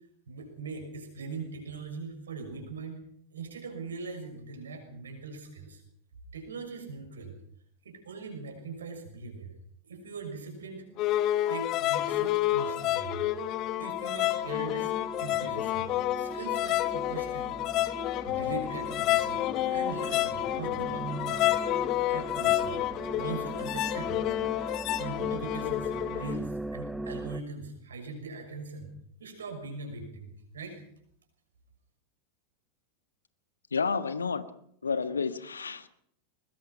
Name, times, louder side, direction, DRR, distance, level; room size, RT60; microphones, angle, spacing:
voice 1, 0.3-3.0 3.3-5.8 6.3-7.4 7.8-9.5 9.9-10.8 11.5-13.2 13.8-14.9 15.2-15.9 16.2-17.7 18.2-19.4 19.7-21.7 22.1-22.8 23.2-24.2 24.9-28.9 29.2-30.3 30.5-30.8, right 4 dB, 70° right, 5 dB, 6.3 m, -40 dB
sound 1, 10.7-27.4, right 2 dB, 5° right, 0.8 m, -41 dB
sound 2, 11.0-26.4, left 14 dB, 35° left, 1.0 m, -29 dB
voice 2, 33.7-34.4 34.8-35.9, left 5 dB, 75° left, 12 dB, 1.5 m, -30 dB
21.0 x 21.0 x 5.8 m, 0.67 s
figure-of-eight pair, 90°, 0 cm